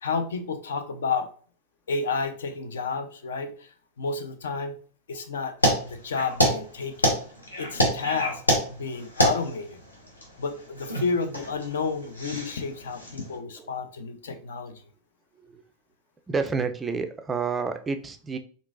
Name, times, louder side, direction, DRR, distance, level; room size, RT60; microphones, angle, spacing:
voice 1, 0.0-1.3 1.9-3.7 4.0-4.7 5.1-5.5 5.9-7.1 7.6-8.4 8.7-9.8 10.4-14.7, left 4 dB, 65° left, 8 dB, 0.4 m, -30 dB
sound 1, 5.6-13.3, equal, 80° left, 0.8 m, -27 dB
voice 2, 16.3-18.4, right 5 dB, 15° right, 7 dB, 0.3 m, -29 dB
3.7 x 2.5 x 2.4 m, 0.43 s
figure-of-eight pair, 90°, 0 cm